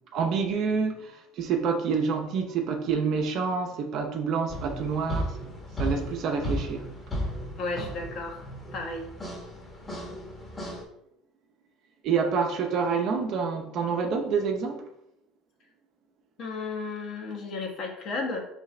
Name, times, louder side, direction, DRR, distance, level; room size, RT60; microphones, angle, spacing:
voice 1, 0.1-5.5 5.8-6.9 12.0-14.8, right 5 dB, 55° right, 3 dB, 0.7 m, -27 dB
sound 1, 4.5-10.8, equal, 25° left, 1.1 m, -35 dB
voice 2, 7.6-8.4 8.7-9.1 16.4-18.4, left 3 dB, 55° left, 1 dB, 1.1 m, -33 dB
3.7 x 3.3 x 3.2 m, 0.80 s
supercardioid pair, 100°, 0 cm